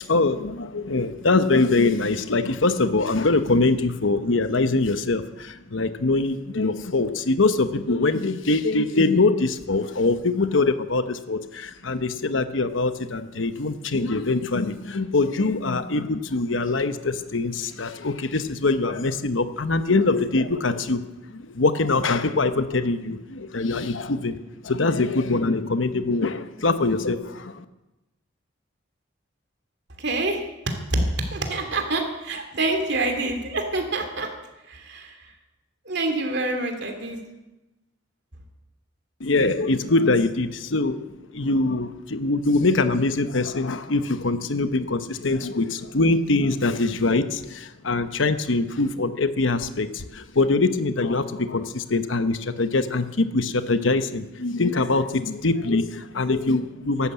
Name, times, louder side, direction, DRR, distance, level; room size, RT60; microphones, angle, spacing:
voice 1, 0.1-21.0 21.3-24.4 24.6-27.6 39.2-41.0 41.3-57.1, left 3 dB, 80° left, 10 dB, 1.0 m, -23 dB
voice 2, 30.0-30.4 30.7-31.0 31.3-34.3 34.7-35.1 35.9-37.2, right 2 dB, 60° right, 4 dB, 2.8 m, -26 dB
14.5 x 12.0 x 8.2 m, 1.0 s
head